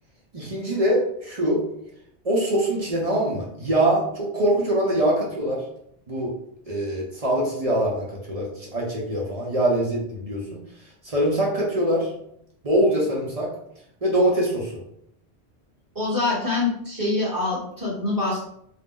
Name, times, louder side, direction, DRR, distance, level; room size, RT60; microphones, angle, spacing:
voice 1, 0.3-1.6 2.2-5.6 6.1-6.3 6.7-10.6 11.0-12.1 12.6-13.5 14.0-14.8, right 1 dB, 40° right, -3 dB, 0.6 m, -23 dB
voice 2, 15.9-18.4, left 3 dB, 20° right, -7 dB, 1.1 m, -25 dB
2.5 x 2.0 x 3.6 m, 0.72 s
omnidirectional pair, 1.1 m